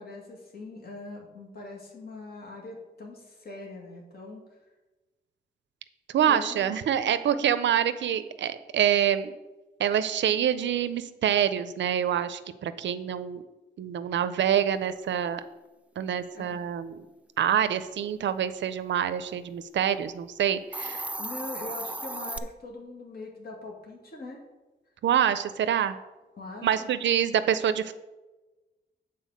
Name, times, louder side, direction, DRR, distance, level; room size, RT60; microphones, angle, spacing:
voice 1, 0.0-4.6 6.3-6.8 16.3-16.6 21.2-24.4 26.3-26.9, left 2 dB, 60° left, -1 dB, 2.2 m, -42 dB
voice 2, 6.1-9.4 9.8-13.4 13.8-15.4 16.0-17.0 17.4-21.0 25.0-26.0 26.6-27.9, right 9 dB, 90° right, 12 dB, 0.5 m, -26 dB
Hiss, 20.6-22.4, right 1 dB, 5° right, 0.4 m, -35 dB
8.4 x 4.2 x 6.4 m, 1.1 s
wide cardioid pair, 135°, 18 cm